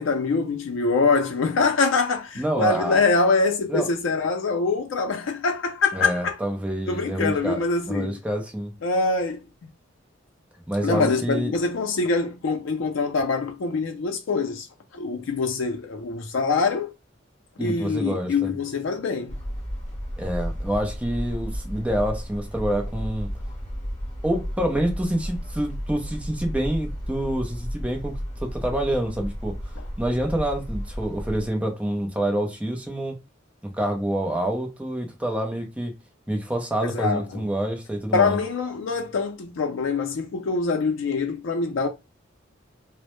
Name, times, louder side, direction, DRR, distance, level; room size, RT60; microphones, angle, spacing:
voice 1, 0.0-6.3 6.9-8.2 8.8-9.7 10.8-14.7 14.9-16.9 17.6-19.3 29.8-29.9 36.8-37.4 38.1-41.9, left 4 dB, 75° left, 0.4 m, -24 dB
voice 2, 2.4-3.0 3.7-3.9 5.9-7.6 7.8-8.7 10.7-11.5 17.6-18.5 20.2-23.3 24.2-29.6 30.0-33.2 33.6-35.9 36.3-38.4, right 1 dB, 5° right, 0.5 m, -27 dB
sound 1, 19.3-31.5, equal, 35° left, 0.8 m, -33 dB
2.1 x 2.0 x 2.9 m
head